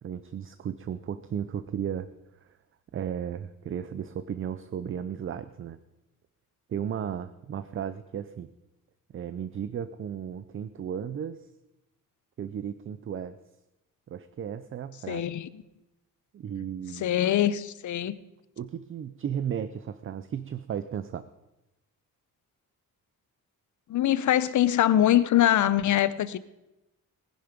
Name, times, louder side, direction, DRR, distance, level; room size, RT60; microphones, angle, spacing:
voice 1, 0.0-2.1 2.4-2.5 2.9-5.8 6.7-8.5 9.1-11.5 12.4-13.4 14.1-15.2 16.3-17.1 18.6-21.3, right 8 dB, 35° right, 0.5 m, -34 dB
voice 2, 15.1-15.6 16.9-18.2 23.9-26.4, left 12 dB, 55° left, 0.7 m, -23 dB
18.5 x 10.5 x 5.1 m
wide cardioid pair, 160°, 35 cm